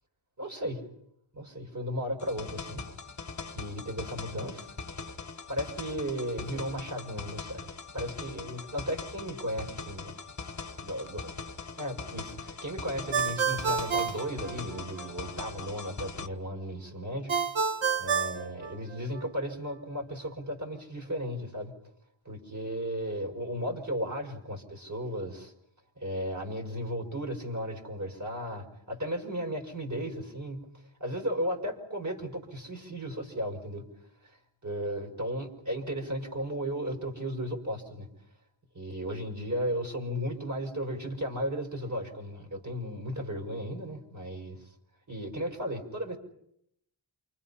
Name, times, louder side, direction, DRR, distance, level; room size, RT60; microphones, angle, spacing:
voice 1, 0.4-0.9 1.3-2.9 3.5-4.7 5.5-7.7 7.9-10.1 10.8-11.2 11.8-17.4 18.0-21.7 22.2-25.5 26.0-30.7 31.0-33.9 34.2-34.4 34.6-38.1 38.7-44.6 45.1-46.2, equal, 35° right, 2 dB, 6.1 m, -35 dB
sound 1, 2.2-16.3, left 4 dB, 35° left, 1.4 m, -41 dB
Ringtone, 13.1-15.1 17.3-19.3, right 5 dB, 80° right, 1.5 m, -29 dB
29.0 x 25.5 x 5.8 m, 0.76 s
wide cardioid pair, 60°, 47 cm